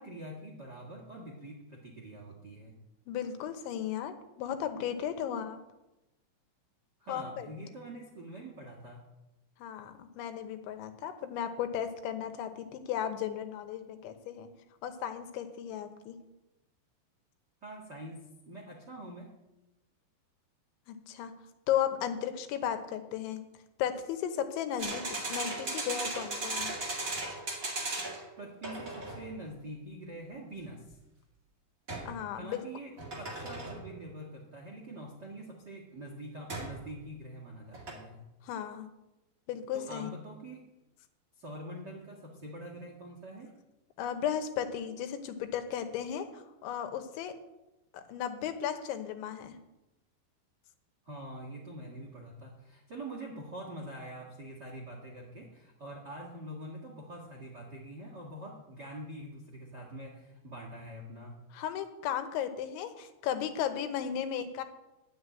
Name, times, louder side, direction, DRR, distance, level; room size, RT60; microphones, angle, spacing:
voice 1, 0.0-2.8 7.0-9.0 17.6-19.3 28.4-31.0 32.3-38.2 39.7-40.7 41.3-43.5 51.0-61.4, right 1 dB, 75° right, -1 dB, 0.9 m, -45 dB
voice 2, 3.1-5.6 7.1-7.5 9.6-14.5 14.8-16.2 20.9-21.4 21.7-23.5 23.8-26.7 32.1-32.7 38.4-38.9 39.5-40.1 44.0-47.4 47.9-49.6 61.5-64.6, left 9 dB, 85° left, 8 dB, 3.4 m, -35 dB
sound 1, 24.8-28.3 28.6-29.3 31.9-32.2 33.0-33.9 36.5-36.8 37.7-37.9, right 2 dB, 30° right, 1.5 m, -37 dB
11.5 x 6.7 x 8.9 m, 0.97 s
omnidirectional pair, 5.2 m